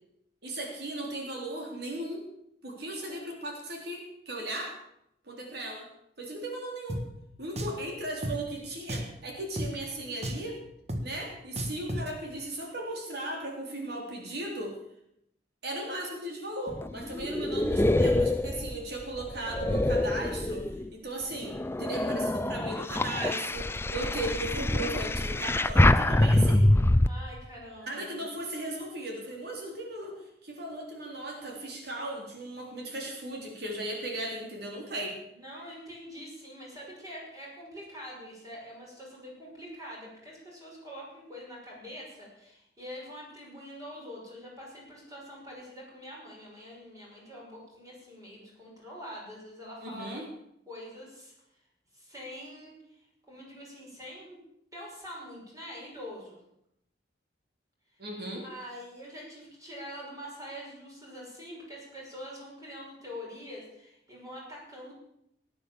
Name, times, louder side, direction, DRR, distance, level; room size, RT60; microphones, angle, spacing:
voice 1, 0.4-2.3 2.6-4.8 5.3-5.9 6.2-7.0 7.4-10.6 11.0-14.8 15.6-26.7 27.8-30.2 30.4-35.2 49.8-50.2 58.0-58.4, right 1 dB, 65° right, 0 dB, 3.6 m, -37 dB
Drum, 6.9-7.0 7.6-7.8 8.2-8.4 8.9-9.2 9.6-9.7 10.2-10.5 10.9-11.0 11.6-12.1, equal, 40° right, 1.6 m, -33 dB
sound 1, 16.7-20.9 21.4-27.1, left 1 dB, 15° left, 0.5 m, -25 dB
voice 2, 27.1-28.2 35.4-50.2 50.7-51.3 51.9-52.7 53.3-54.4 54.7-56.4 58.4-64.9, equal, 20° right, -3 dB, 5.8 m, -44 dB
18.5 x 9.5 x 7.1 m, 0.78 s
head